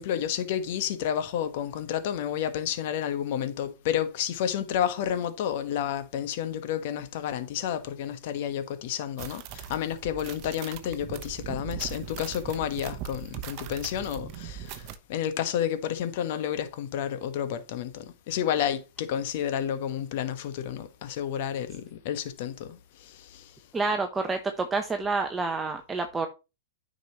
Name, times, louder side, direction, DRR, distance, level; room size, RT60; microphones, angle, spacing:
voice 1, 0.0-23.5, left 9 dB, 55° left, 1.2 m, -31 dB
sound 1, 9.2-15.0, right 11 dB, 45° right, 0.9 m, -40 dB
voice 2, 23.7-26.3, right 3 dB, 15° right, 0.8 m, -28 dB
9.3 x 5.4 x 2.9 m
hypercardioid pair, 125°, 0 cm